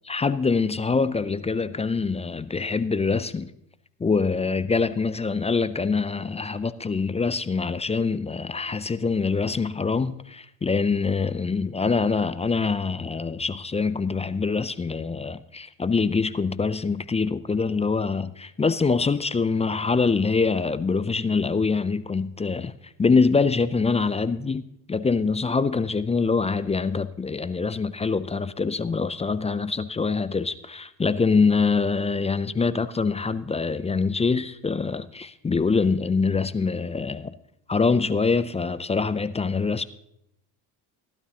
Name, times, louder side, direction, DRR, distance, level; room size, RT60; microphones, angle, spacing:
voice 1, 0.1-3.5 4.0-22.7 23.0-37.3 37.7-39.8, left 4 dB, 15° left, 0.4 m, -24 dB
15.5 x 12.0 x 2.9 m
hypercardioid pair, 65°, 48 cm